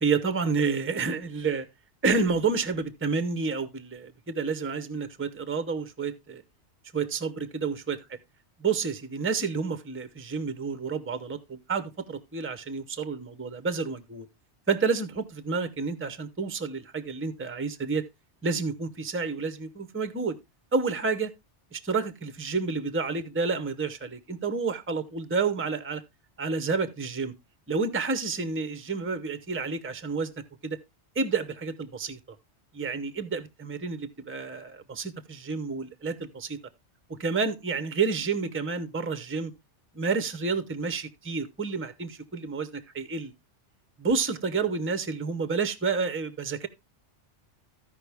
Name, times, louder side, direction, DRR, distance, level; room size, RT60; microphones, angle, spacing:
voice 1, 0.0-1.7 2.0-6.4 6.9-8.0 8.6-14.3 14.7-18.0 18.4-20.4 20.7-21.3 21.7-26.0 26.4-27.3 27.7-30.3 30.6-30.8 31.2-32.4 32.7-36.6 37.1-39.5 39.9-43.3 44.0-46.7, right 4 dB, 15° right, 0.7 m, -29 dB
14.5 x 5.2 x 3.4 m
omnidirectional pair, 1.2 m